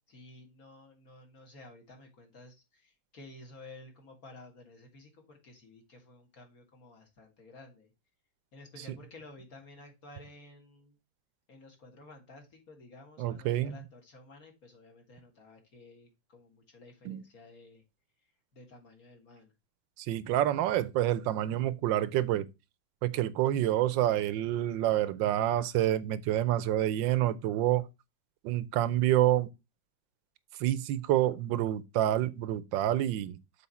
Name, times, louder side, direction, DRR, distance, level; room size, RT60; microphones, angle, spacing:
voice 1, 0.1-7.9 8.5-11.0 11.5-17.8 18.5-19.5, left 2 dB, 50° left, 2.2 m, -53 dB
voice 2, 13.2-13.8 17.1-17.2 20.0-22.5 23.0-27.8 28.4-29.5 30.6-33.4, right 13 dB, 85° right, 1.4 m, -28 dB
7.0 x 4.7 x 4.1 m
omnidirectional pair, 2.0 m